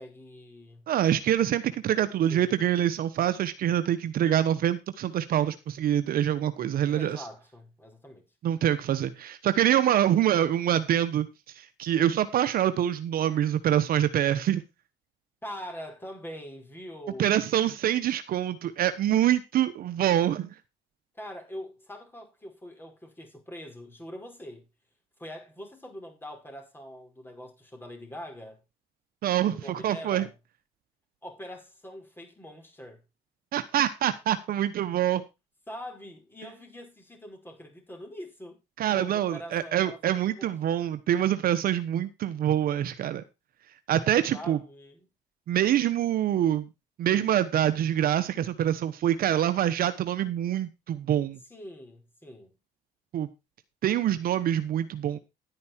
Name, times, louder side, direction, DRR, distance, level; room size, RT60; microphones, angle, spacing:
voice 1, 0.0-0.9 2.3-2.6 6.8-8.3 15.4-17.4 21.1-24.7 25.2-28.6 29.5-30.3 31.2-33.0 35.7-38.6 38.9-40.0 40.3-40.8 44.3-45.1 51.5-52.6, equal, 15° left, 5.2 m, -43 dB
voice 2, 0.9-7.2 8.4-11.3 11.6-14.6 17.2-20.5 29.2-30.3 33.5-35.2 38.8-43.2 43.9-44.6 45.5-46.7 47.0-51.4 53.1-53.3 53.8-55.2, right 11 dB, 60° right, 1.1 m, -25 dB
11.0 x 9.5 x 4.5 m
cardioid pair, 110°, 17 cm